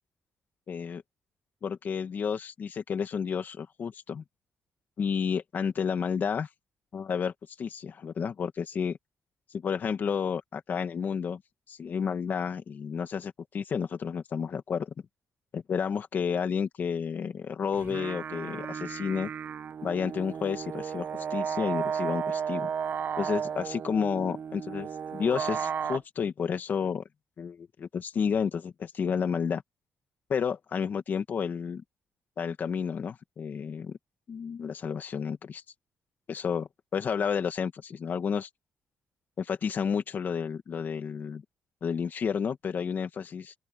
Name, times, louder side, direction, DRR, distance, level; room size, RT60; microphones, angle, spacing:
voice 1, 0.7-1.0 1.6-4.2 5.0-6.5 6.9-7.3 7.6-9.0 9.5-11.4 11.7-14.9 15.5-19.3 19.8-22.7 23.2-27.0 27.4-29.6 30.3-31.8 32.4-34.0 34.3-35.6 36.3-38.5 39.4-41.4 41.8-43.5, left 6 dB, 40° left, 2.3 m, -31 dB
sound 1, 17.7-26.0, right 7 dB, 45° right, 1.2 m, -34 dB
open air
cardioid pair, 155°, 5 cm